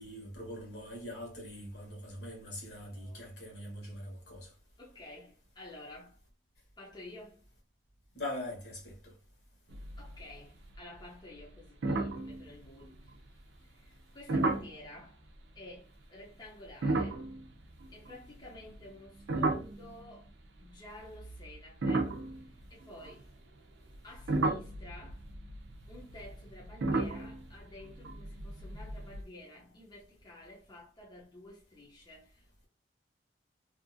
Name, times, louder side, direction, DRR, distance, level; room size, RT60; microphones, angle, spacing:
voice 1, 0.0-4.5 8.1-9.1, left 1 dB, 70° left, 1.3 m, -42 dB
voice 2, 2.7-3.3 4.8-6.2 6.8-7.5 10.0-13.4 13.7-15.2 15.5-17.3 17.9-20.3 20.6-23.3 24.0-25.2 25.9-32.7, left 1 dB, 25° left, 0.7 m, -51 dB
sound 1, 9.7-10.4 10.6-11.0 11.4-11.5 11.8-13.1 14.3-14.8 16.7-20.3 21.0-23.3 23.9-29.2, right 2 dB, 85° right, 0.5 m, -34 dB
2.8 x 2.5 x 2.6 m
head